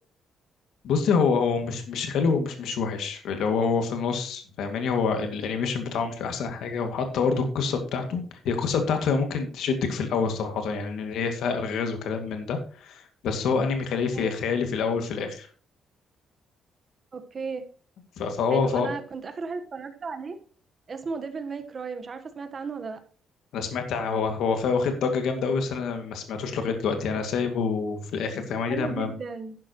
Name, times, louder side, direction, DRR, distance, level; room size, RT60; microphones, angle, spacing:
voice 1, 0.8-15.5 18.2-18.9 23.5-29.1, left 5 dB, 70° left, 2.1 m, -27 dB
voice 2, 17.1-17.6 18.5-20.4 20.9-23.0 28.7-29.6, right 4 dB, 30° right, 1.2 m, -35 dB
11.5 x 10.5 x 3.0 m
cardioid pair, 175°, 0 cm